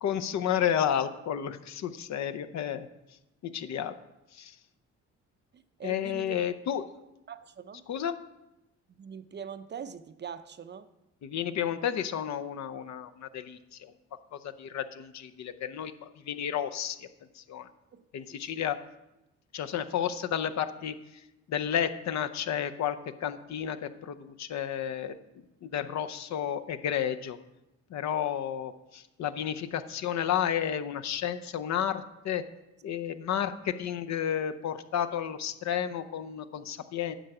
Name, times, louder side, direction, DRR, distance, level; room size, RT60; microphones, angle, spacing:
voice 1, 0.0-2.9 3.5-3.9 4.3-4.5 5.8-6.8 7.9-8.1 11.2-13.9 14.3-17.0 17.4-17.7 18.1-18.8 19.5-20.9 21.5-23.0 23.2-25.1 25.6-27.4 27.9-32.4 32.8-37.1, left 9 dB, 65° left, 0.7 m, -31 dB
voice 2, 5.8-6.4 7.3-7.8 9.0-10.9 17.9-18.0 18.3-18.7 33.3-33.4, right 7 dB, 35° right, 0.5 m, -43 dB
10.0 x 6.8 x 4.8 m
cardioid pair, 90°, 30 cm